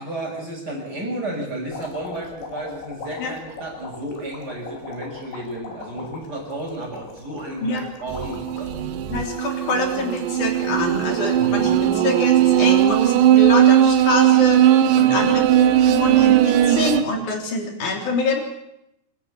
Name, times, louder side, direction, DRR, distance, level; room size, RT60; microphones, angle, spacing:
voice 1, 0.0-8.7 11.3-11.7 14.9-15.3, right 1 dB, 20° right, -1 dB, 6.4 m, -32 dB
sound 1, 1.7-14.0 14.5-15.2 16.2-16.4, left 4 dB, 75° left, 5.3 m, -41 dB
sound 2, 8.1-17.0, right 11 dB, 75° right, 3.2 m, -17 dB
voice 2, 9.1-15.5 15.9-18.4, left 3 dB, 45° left, 3 dB, 4.5 m, -25 dB
27.0 x 13.0 x 8.6 m, 0.85 s
omnidirectional pair, 5.3 m